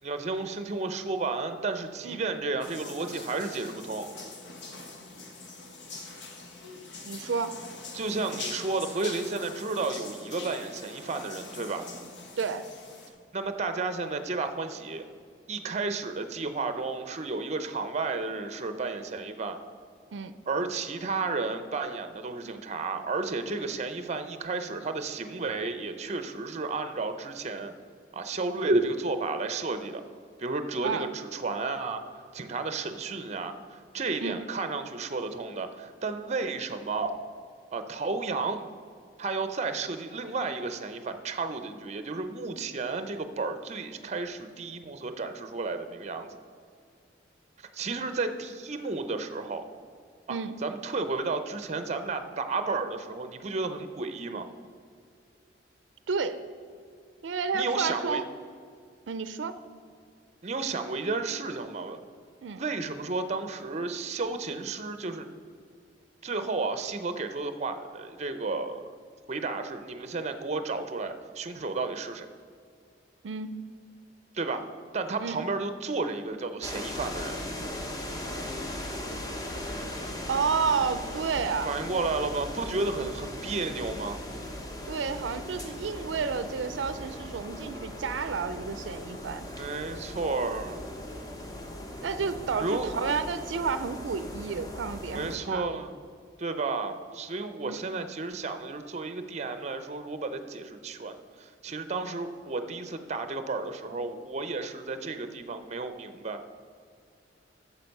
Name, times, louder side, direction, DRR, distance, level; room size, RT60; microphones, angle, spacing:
voice 1, 0.0-4.1 7.9-11.9 13.3-15.1 15.5-19.6 20.5-27.7 28.1-30.0 30.4-32.0 32.3-37.1 37.7-38.6 39.2-46.3 47.7-49.6 50.3-54.5 57.5-58.2 60.4-62.0 62.5-65.3 66.2-68.8 69.3-72.3 74.3-74.7 74.9-77.4 81.6-84.2 89.5-90.8 92.6-92.9 95.1-95.9 96.4-106.4, right 3 dB, 40° right, 9 dB, 0.6 m, -32 dB
sound 1, 2.6-13.1, left 3 dB, 75° left, 1.2 m, -43 dB
voice 2, 7.0-7.5 12.4-12.7 20.1-20.3 30.8-31.0 34.2-34.4 50.3-50.6 56.1-56.4 57.2-58.3 59.1-59.6 62.4-62.6 73.2-73.6 75.2-75.5 80.3-81.7 84.9-89.4 92.0-95.7 97.6-97.8, right 5 dB, 85° right, 12 dB, 0.4 m, -31 dB
sound 2, 76.6-95.4, left 1 dB, 20° left, 0.9 m, -38 dB
9.0 x 6.9 x 5.4 m, 2.2 s
head